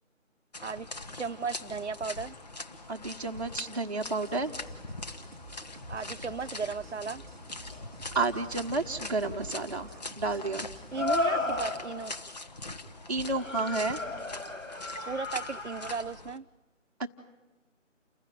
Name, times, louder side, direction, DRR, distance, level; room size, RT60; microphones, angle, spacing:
sound 1, 0.5-16.4, left 2 dB, 30° left, 1.3 m, -43 dB
voice 1, 1.2-2.3 5.9-7.2 10.9-12.1 15.1-16.4, right 5 dB, 65° right, 15 dB, 0.8 m, -35 dB
voice 2, 2.9-4.5 8.1-10.7 13.1-14.0 17.0-17.1, right 3 dB, 30° right, -4 dB, 1.1 m, -31 dB
sound 2, 4.2-11.8, right 1 dB, ahead, 1.2 m, -50 dB
sound 3, 7.7-7.8 10.9-12.1 13.3-16.0, left 3 dB, 80° left, 4.6 m, -33 dB
29.5 x 16.0 x 10.0 m, 1.1 s
figure-of-eight pair, 160°, 39 cm